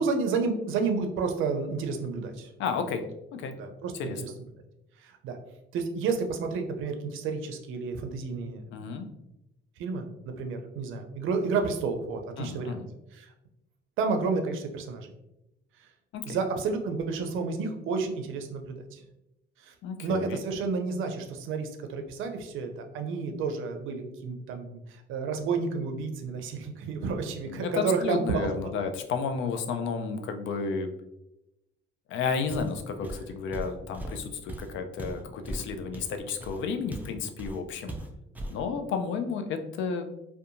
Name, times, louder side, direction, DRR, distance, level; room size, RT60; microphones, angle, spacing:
voice 1, 0.0-2.5 3.5-4.3 5.0-5.4 5.7-8.6 8.9-9.0 9.8-12.8 13.1-13.3 14.0-15.1 15.8-15.9 16.3-19.0 19.6-19.7 20.0-28.7, right 4 dB, 85° right, 5 dB, 0.5 m, -31 dB
voice 2, 2.6-3.0 3.3-3.5 4.0-4.2 8.7-9.1 12.4-12.9 16.1-16.4 19.8-20.4 27.5-30.9 32.1-38.0 38.5-40.1, left 5 dB, 75° left, 7 dB, 0.4 m, -32 dB
Walk footsteps, 32.5-32.8 33.0-37.1 37.4-37.6 37.9-38.6, right 1 dB, 10° right, 0.4 m, -38 dB
2.7 x 2.2 x 2.5 m, 0.89 s
cardioid pair, 90°, 20 cm